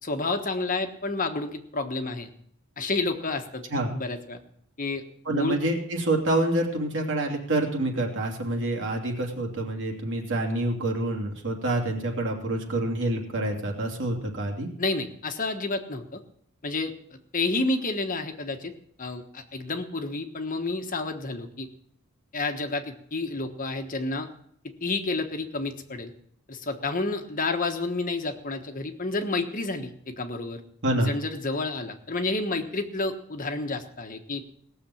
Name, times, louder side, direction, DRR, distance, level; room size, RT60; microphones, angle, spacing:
voice 1, 0.0-2.3 2.8-4.4 4.8-5.6 14.8-16.2 16.6-18.7 19.0-21.7 22.3-24.3 24.8-26.1 26.5-30.6 31.0-34.4, left 3 dB, 40° left, 6 dB, 1.3 m, -30 dB
voice 2, 5.2-14.7 30.8-31.1, right 1 dB, 60° right, 1 dB, 2.9 m, -27 dB
18.0 x 7.0 x 8.6 m, 0.65 s
head